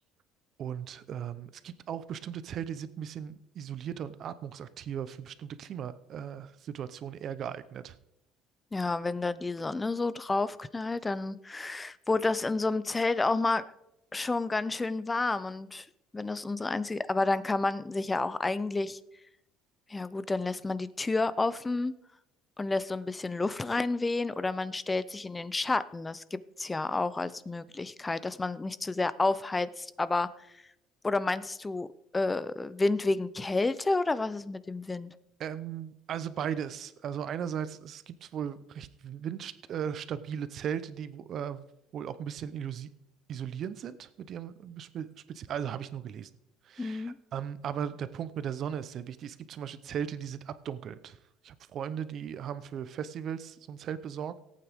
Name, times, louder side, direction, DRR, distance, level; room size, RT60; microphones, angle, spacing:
voice 1, 0.6-8.0 35.4-41.6 41.9-42.9 43.3-46.3 46.7-51.2 51.4-54.4, right 8 dB, 45° right, 14 dB, 0.7 m, -37 dB
voice 2, 8.7-13.7 14.1-15.9 16.1-19.0 19.9-21.9 22.6-30.3 31.0-31.9 32.1-35.1 46.8-47.2, left 3 dB, 15° left, 16 dB, 0.5 m, -30 dB
18.0 x 8.7 x 3.5 m, 0.84 s
cardioid pair, 135°, 0 cm